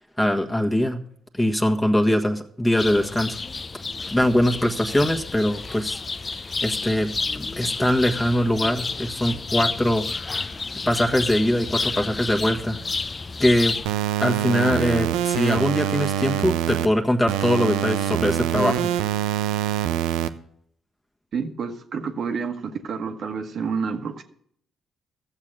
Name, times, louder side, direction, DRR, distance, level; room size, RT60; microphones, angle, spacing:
voice 1, 0.2-1.0 1.3-3.4 4.1-6.0 6.6-10.1 10.9-12.8 13.4-13.7 14.2-18.8, left 1 dB, 15° left, 1.6 m, -22 dB
sound 1, 2.8-13.9, left 4 dB, 35° left, 0.6 m, -30 dB
sound 2, 13.9-16.9 17.3-20.3, right 11 dB, 75° right, 0.6 m, -24 dB
voice 2, 21.3-24.2, right 5 dB, 60° right, 1.4 m, -29 dB
14.0 x 7.4 x 6.7 m
hypercardioid pair, 45°, 0 cm